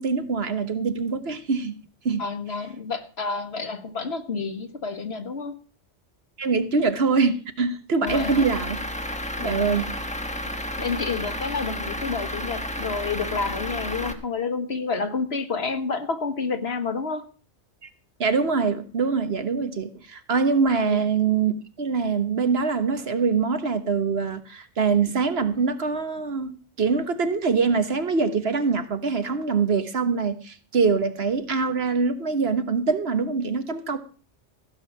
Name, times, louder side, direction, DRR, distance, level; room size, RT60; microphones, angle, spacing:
voice 1, 0.0-1.7 2.0-2.2 6.4-8.8 9.4-9.9 18.2-34.0, right 5 dB, 60° right, 1.5 m, -24 dB
voice 2, 2.2-5.6 8.0-8.5 9.4-9.9 10.7-17.3 20.8-21.0, left 4 dB, 60° left, 1.6 m, -29 dB
Truck / Idling, 8.1-14.1, left 1 dB, 5° left, 1.3 m, -32 dB
15.5 x 6.4 x 7.3 m
omnidirectional pair, 1.2 m